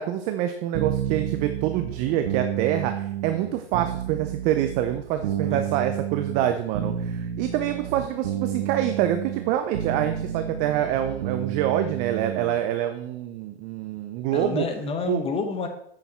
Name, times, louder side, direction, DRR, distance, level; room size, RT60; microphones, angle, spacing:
voice 1, 0.0-14.7 15.1-15.2, right 11 dB, 25° right, 7 dB, 0.4 m, -26 dB
sound 1, 0.7-12.6, right 10 dB, 55° right, 1.1 m, -31 dB
voice 2, 5.5-5.8 14.3-15.7, left 4 dB, 15° left, 6 dB, 1.2 m, -29 dB
8.2 x 6.5 x 4.3 m, 0.68 s
hypercardioid pair, 130°, 33 cm